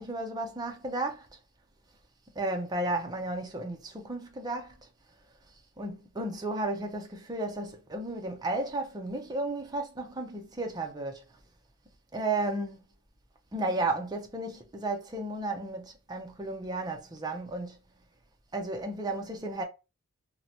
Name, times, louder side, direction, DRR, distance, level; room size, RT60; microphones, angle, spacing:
voice 1, 0.0-1.4 2.4-4.8 5.8-11.2 12.1-12.8 13.5-17.8 18.5-19.6, right 2 dB, 20° right, 0.4 m, -33 dB
2.8 x 2.1 x 2.6 m
head